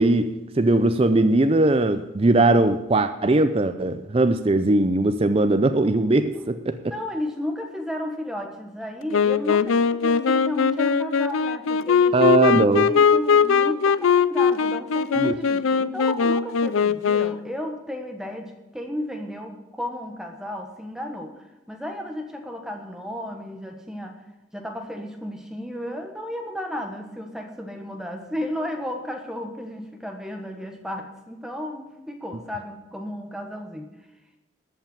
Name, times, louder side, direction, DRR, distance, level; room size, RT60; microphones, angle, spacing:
voice 1, 0.0-6.9 12.1-12.9 15.2-15.4, right 2 dB, 30° right, 9 dB, 0.5 m, -20 dB
voice 2, 6.9-24.2 24.5-34.0, left 1 dB, 5° right, 4 dB, 1.3 m, -33 dB
Wind instrument woodwind instrument, 9.1-17.5, left 6 dB, 80° left, 0.5 m, -20 dB
14.0 x 5.7 x 9.3 m, 1.0 s
head